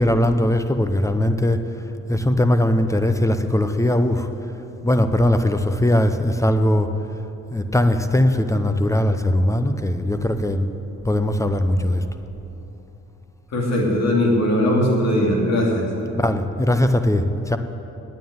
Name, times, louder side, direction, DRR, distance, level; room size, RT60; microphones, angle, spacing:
voice 1, 0.0-1.6 2.1-4.3 4.8-6.9 7.5-10.7 11.0-12.0 16.2-17.6, left 1 dB, 10° left, 8 dB, 0.7 m, -20 dB
voice 2, 13.5-15.9, left 1 dB, 60° left, -1 dB, 3.1 m, -19 dB
9.4 x 9.2 x 9.5 m, 3.0 s
cardioid pair, 90°, 30 cm